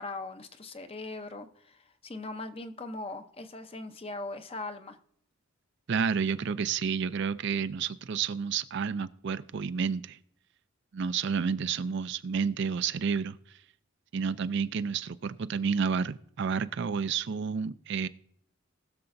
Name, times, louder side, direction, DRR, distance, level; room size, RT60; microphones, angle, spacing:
voice 1, 0.0-5.0, left 2 dB, 25° left, 8 dB, 0.7 m, -40 dB
voice 2, 5.9-10.2 10.9-13.4 14.1-18.1, right 6 dB, 55° right, 13 dB, 0.4 m, -30 dB
20.0 x 6.9 x 2.6 m, 0.69 s
head